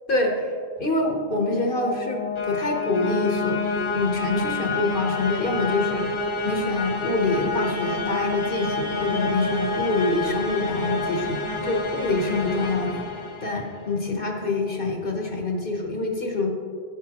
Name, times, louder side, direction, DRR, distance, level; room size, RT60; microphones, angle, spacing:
voice 1, 0.1-0.5 0.8-3.6 3.9-6.1 6.5-13.1 13.4-16.5, left 2 dB, 55° left, 1 dB, 1.3 m, -25 dB
sound 1, 0.9-13.9, left 3 dB, 30° left, 0.7 m, -29 dB
11.0 x 9.2 x 3.0 m, 2.2 s
omnidirectional pair, 1.1 m